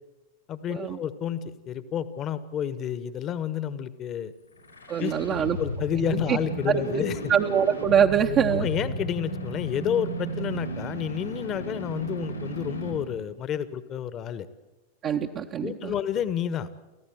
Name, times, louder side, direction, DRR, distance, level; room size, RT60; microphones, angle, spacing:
voice 1, 0.5-4.3 5.0-5.1 5.6-7.2 8.5-14.5 15.6-16.7, left 9 dB, 30° left, 14 dB, 1.4 m, -30 dB
sound 1, 4.5-13.2, right 1 dB, 80° left, 4.8 m, -34 dB
voice 2, 4.9-5.6 6.1-6.4 6.7-7.0 7.3-8.7 15.0-15.9, right 8 dB, 30° right, 2 dB, 1.1 m, -24 dB
29.5 x 15.0 x 7.8 m, 1.1 s
figure-of-eight pair, 90°, 0 cm